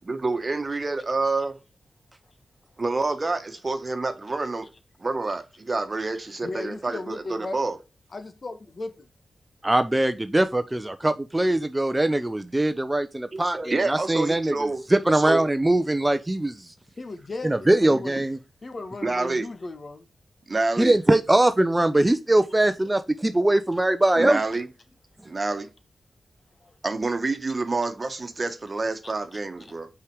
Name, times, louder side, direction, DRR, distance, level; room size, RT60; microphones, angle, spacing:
voice 1, 0.0-1.5 2.8-4.7 5.0-7.2 7.5-7.8 13.3-14.8 15.1-15.4 19.0-19.4 20.5-20.9 24.2-24.7 25.2-25.7 26.8-29.9, right 3 dB, 45° right, 1.3 m, -27 dB
voice 2, 6.0-7.6 8.1-8.9 17.0-18.3 18.6-20.1 20.8-20.9 24.5-24.6 26.6-26.7 29.0-29.7, left 2 dB, 50° left, 1.4 m, -37 dB
voice 3, 9.6-14.5 14.9-16.6 17.4-18.4 20.8-24.4, right 1 dB, 20° right, 0.7 m, -22 dB
5.6 x 5.1 x 4.7 m
supercardioid pair, 40°, 0 cm